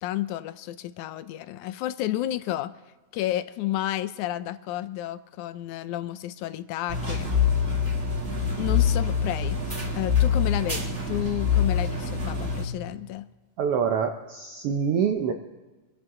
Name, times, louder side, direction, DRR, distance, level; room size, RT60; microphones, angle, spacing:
voice 1, 0.0-2.7 3.1-7.3 8.5-9.6 9.9-13.3, left 14 dB, 80° left, 13 dB, 1.9 m, -31 dB
sound 1, 6.9-12.6, left 6 dB, 25° right, 1.7 m, -25 dB
voice 2, 13.6-15.3, right 7 dB, 80° right, 5 dB, 1.3 m, -25 dB
24.0 x 11.0 x 3.7 m, 1.2 s
omnidirectional pair, 3.5 m